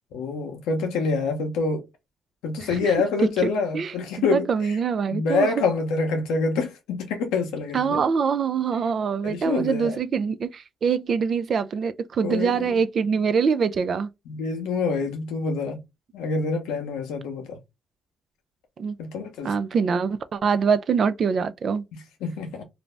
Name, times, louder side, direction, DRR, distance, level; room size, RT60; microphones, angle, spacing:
voice 1, 0.1-1.9 2.4-4.8 5.1-8.0 9.2-10.0 12.2-12.8 13.5-13.7 14.3-15.8 16.1-17.6 19.0-19.5 22.2-22.6, left 4 dB, 85° left, 0.7 m, -26 dB
voice 2, 3.4-3.9 4.3-5.5 7.7-14.1 18.8-19.0 19.4-21.8, right 6 dB, 60° right, 0.3 m, -24 dB
2.5 x 2.0 x 3.1 m
supercardioid pair, 50°, 0 cm